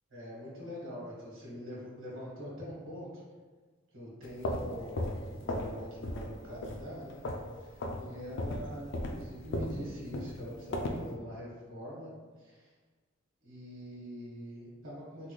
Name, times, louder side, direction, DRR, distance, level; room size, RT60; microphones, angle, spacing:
voice 1, 0.1-3.2 3.9-5.1 5.4-7.2 7.5-12.1 12.4-12.7 13.4-15.3, equal, 85° right, -7 dB, 1.3 m, -44 dB
sound 1, 4.2-5.8 6.0-6.3 6.6-7.5 7.8-8.0 8.4-11.1, left 1 dB, 60° left, 0.4 m, -35 dB
3.6 x 3.0 x 2.2 m, 1.4 s
head